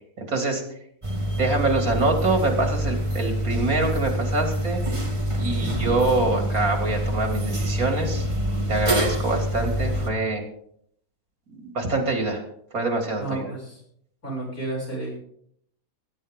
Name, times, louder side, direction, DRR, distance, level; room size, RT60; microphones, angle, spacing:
voice 1, 0.2-0.6 1.3-4.8 5.4-8.3 8.7-10.4 11.5-12.4 12.7-13.5, right 2 dB, 80° right, 3 dB, 3.4 m, -25 dB
sound 1, 1.0-10.1, equal, 20° right, 2.2 m, -26 dB
voice 2, 13.2-13.8 14.2-15.2, right 2 dB, 80° left, -5 dB, 7.8 m, -32 dB
21.5 x 10.5 x 3.8 m, 0.68 s
omnidirectional pair, 1.5 m